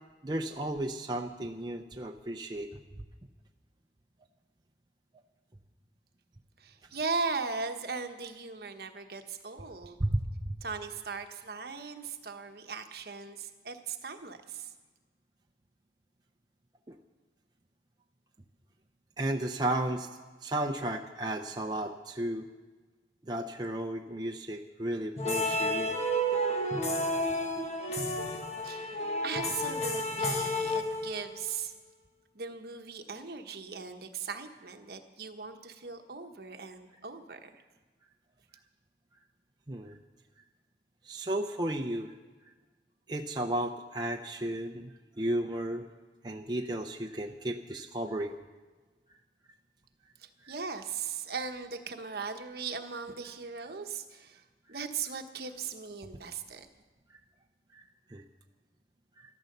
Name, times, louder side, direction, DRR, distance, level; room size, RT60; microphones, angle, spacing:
voice 1, 0.2-2.8 10.0-10.6 16.9-17.0 19.2-20.1 20.4-22.5 23.2-26.0 39.7-40.0 41.0-42.1 43.1-45.9 46.2-48.4 50.4-50.5 57.7-57.8 58.1-58.2, right 1 dB, 25° right, 2 dB, 0.6 m, -34 dB
voice 2, 6.6-10.0 10.6-14.7 28.6-31.7 32.3-37.6 50.2-54.4 54.7-56.7, right 5 dB, 60° right, 6 dB, 1.1 m, -38 dB
sound 1, 25.2-31.4, equal, 40° left, 1.5 m, -31 dB
13.5 x 13.0 x 6.7 m, 1.3 s
head